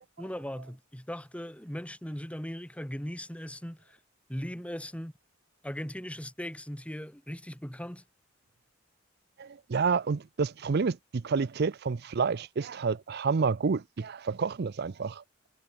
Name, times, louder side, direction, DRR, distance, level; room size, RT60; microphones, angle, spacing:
voice 1, 0.2-4.0 4.3-5.1 5.6-8.0, equal, 5° left, 3.1 m, -38 dB
voice 2, 9.4-15.2, right 5 dB, 55° right, 0.5 m, -29 dB
head